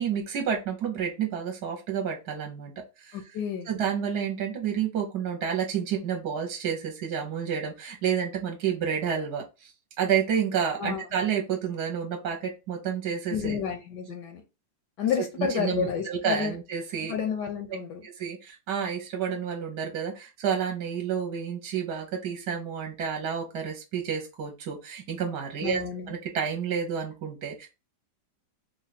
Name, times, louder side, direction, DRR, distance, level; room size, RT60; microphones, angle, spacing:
voice 1, 0.0-2.7 3.0-3.2 3.6-9.7 10.0-13.6 15.4-17.1 18.0-25.8 26.1-27.7, right 7 dB, 65° right, 1.1 m, -30 dB
voice 2, 3.1-3.7 10.8-11.1 13.3-14.4 15.0-16.5 17.1-18.0 25.6-26.1, left 7 dB, 75° left, 1.1 m, -30 dB
3.4 x 2.3 x 3.9 m
omnidirectional pair, 2.0 m